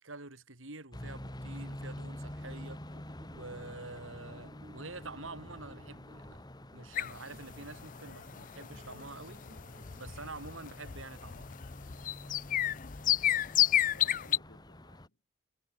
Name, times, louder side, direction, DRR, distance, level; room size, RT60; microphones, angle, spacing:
voice 1, 0.0-2.8 3.3-6.5 6.7-9.4 10.0-11.5, right 3 dB, 80° right, 4.0 m, -47 dB
sound 1, 0.9-15.1, left 1 dB, 20° left, 2.0 m, -48 dB
sound 2, 2.2-11.6, equal, 35° right, 5.6 m, -60 dB
sound 3, 6.9-14.4, left 12 dB, 40° left, 0.5 m, -32 dB
voice 2, 13.0-15.2, left 2 dB, 65° left, 3.6 m, -59 dB
head